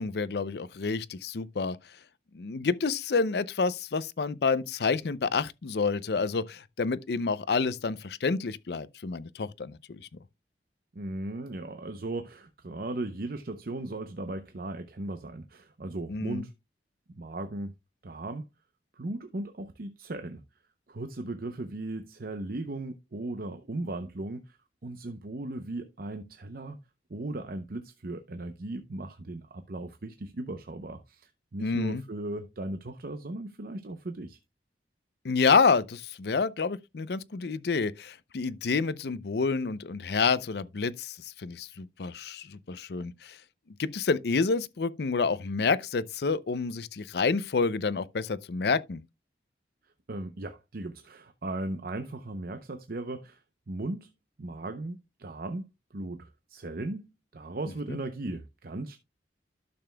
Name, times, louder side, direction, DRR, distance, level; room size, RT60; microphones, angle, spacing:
voice 1, 0.0-1.8 2.3-10.0 16.1-16.5 31.6-32.0 35.2-43.4 43.8-49.0 57.9-58.0, left 4 dB, 60° left, 0.5 m, -28 dB
voice 2, 10.9-16.5 17.1-17.7 18.0-18.5 19.0-20.4 20.9-26.8 27.1-34.4 50.1-54.1 54.4-59.0, right 2 dB, 55° right, 0.7 m, -37 dB
12.0 x 6.8 x 2.2 m
head